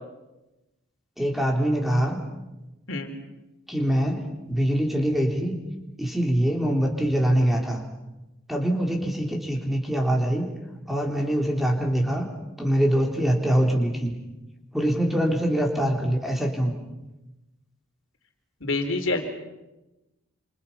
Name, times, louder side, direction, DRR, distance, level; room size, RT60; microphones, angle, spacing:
voice 1, 1.2-2.2 3.7-4.2 4.5-5.5 6.0-7.8 8.5-10.5 10.9-12.2 12.6-14.1 14.7-16.7, equal, ahead, 1 dB, 3.4 m, -23 dB
voice 2, 18.6-19.2, left 2 dB, 60° left, 5 dB, 3.8 m, -26 dB
28.5 x 28.5 x 5.7 m, 1.0 s
head